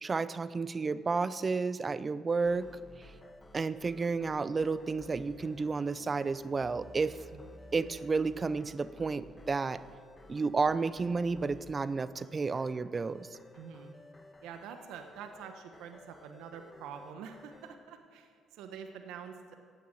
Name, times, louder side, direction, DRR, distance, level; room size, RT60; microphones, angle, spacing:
voice 1, 0.0-2.7 3.0-3.1 3.5-7.2 7.7-9.8 10.3-13.3, right 4 dB, 30° right, 16 dB, 0.6 m, -31 dB
sound 1, 2.4-17.7, left 2 dB, 20° left, 1.6 m, -54 dB
voice 2, 13.5-13.9 14.4-19.6, right 7 dB, 85° right, 6 dB, 1.2 m, -46 dB
16.0 x 9.3 x 7.7 m, 2.2 s
cardioid pair, 85°, 0 cm